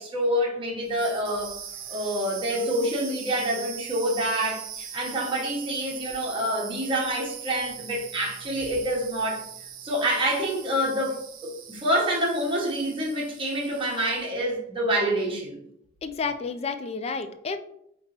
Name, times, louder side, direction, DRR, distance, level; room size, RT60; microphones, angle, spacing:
voice 1, 0.0-1.6 1.9-9.4 9.8-11.2 11.4-15.6, right 1 dB, 25° right, -3 dB, 1.0 m, -27 dB
sound 1, 0.8-14.4, right 9 dB, 85° right, 0.6 m, -41 dB
voice 2, 16.0-17.6, left 4 dB, 30° left, 9 dB, 0.3 m, -30 dB
5.1 x 3.0 x 2.9 m, 0.73 s
head